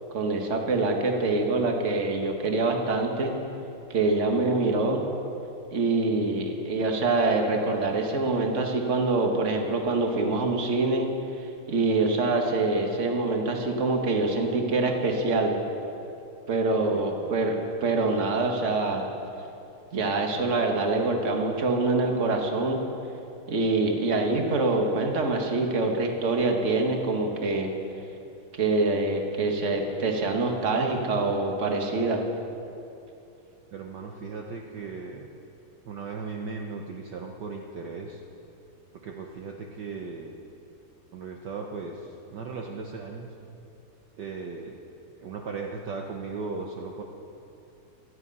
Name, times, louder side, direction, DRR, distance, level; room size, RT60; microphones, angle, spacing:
voice 1, 0.1-3.3 3.9-5.0 5.7-11.1 11.4-15.6 16.5-19.1 19.9-22.8 23.5-27.7 28.5-32.2, right 3 dB, 40° right, 2 dB, 1.7 m, -25 dB
voice 2, 16.9-17.4 33.7-35.3 35.8-38.2 39.0-40.3 41.1-43.3 44.2-44.8 45.2-47.0, right 4 dB, 60° right, 1 dB, 1.5 m, -37 dB
18.0 x 13.0 x 5.5 m, 2.8 s
omnidirectional pair, 2.3 m